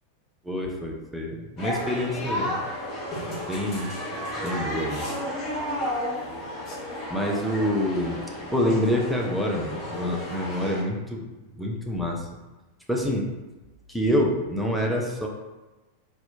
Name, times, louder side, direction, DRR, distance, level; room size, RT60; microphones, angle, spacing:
voice 1, 0.4-2.6 3.5-3.9 4.4-5.1 7.1-8.2 8.5-11.2 11.6-12.3 12.9-13.3 13.9-15.3, left 1 dB, ahead, -1 dB, 0.5 m, -26 dB
sound 1, 1.6-10.8, equal, 30° left, 1.1 m, -32 dB
4.1 x 2.3 x 2.7 m, 1.1 s
figure-of-eight pair, 90°, 0 cm